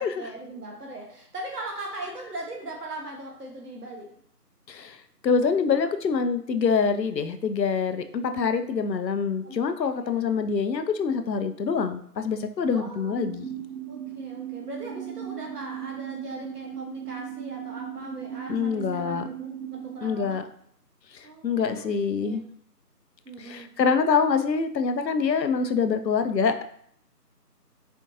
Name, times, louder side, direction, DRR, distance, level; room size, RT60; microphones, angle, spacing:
voice 1, 0.0-4.1 9.4-9.6 9.9-10.4 12.7-13.1 13.9-20.4 21.2-21.9 22.2-22.4 23.2-23.7, right 1 dB, 70° right, 0 dB, 0.9 m, -39 dB
voice 2, 5.2-13.5 18.5-19.3 20.0-20.4 21.1-22.4 23.4-26.6, left 5 dB, 85° left, 9 dB, 0.6 m, -25 dB
sound 1, 13.1-20.0, right 10 dB, 55° right, 0.5 m, -37 dB
4.3 x 2.9 x 2.4 m, 0.63 s
figure-of-eight pair, 175°, 49 cm